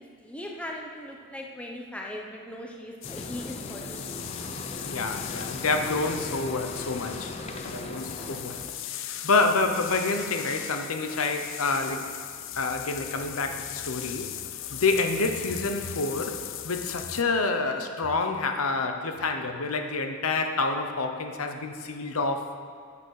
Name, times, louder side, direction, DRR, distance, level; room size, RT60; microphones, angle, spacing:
voice 1, 0.0-4.3 5.6-5.8, left 1 dB, 5° left, 0 dB, 1.0 m, -39 dB
sound 1, 3.0-17.2, left 11 dB, 60° left, 0.5 m, -38 dB
sound 2, 3.0-8.7, left 2 dB, 30° left, 0.7 m, -38 dB
voice 2, 4.8-7.3 7.7-8.6 9.2-12.1 12.6-14.3 14.7-22.5, left 3 dB, 80° left, 6 dB, 0.9 m, -28 dB
10.0 x 7.1 x 6.5 m, 2.3 s
head